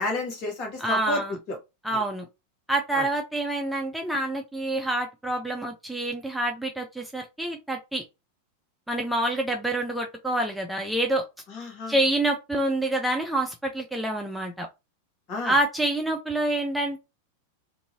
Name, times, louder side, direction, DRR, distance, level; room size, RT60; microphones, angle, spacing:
voice 1, 0.0-1.2 1.5-1.6 2.9-3.0 11.5-12.0 15.3-15.5, left 2 dB, 40° left, 1.2 m, -30 dB
voice 2, 0.8-1.4 1.8-2.3 2.7-8.0 8.9-11.2 11.9-14.7 15.4-17.0, right 1 dB, ahead, 0.5 m, -27 dB
2.6 x 2.6 x 2.7 m
figure-of-eight pair, 90°, 0 cm